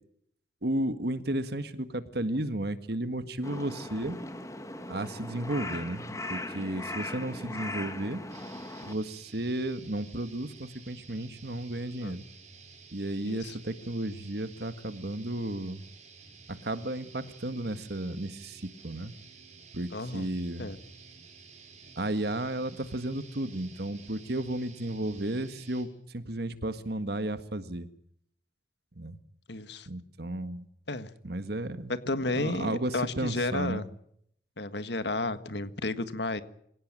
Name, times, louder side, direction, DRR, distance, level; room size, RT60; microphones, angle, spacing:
voice 1, 0.6-4.2 4.9-8.2 8.9-12.2 12.9-15.9 16.5-19.1 19.7-20.6 22.0-27.9 29.0-29.2 29.9-30.7 31.2-32.0 32.3-33.9, right 1 dB, 55° right, 11 dB, 1.7 m, -33 dB
Crow, 3.4-8.9, left 2 dB, 15° left, 2.1 m, -39 dB
sound 1, 8.3-25.8, right 5 dB, 40° right, 5.4 m, -52 dB
voice 2, 13.3-13.6 19.9-20.3 20.6-20.8 29.5-29.9 30.9-31.1 31.9-33.9 34.6-36.4, left 2 dB, 60° left, 11 dB, 1.7 m, -32 dB
25.5 x 17.5 x 9.0 m, 0.70 s
head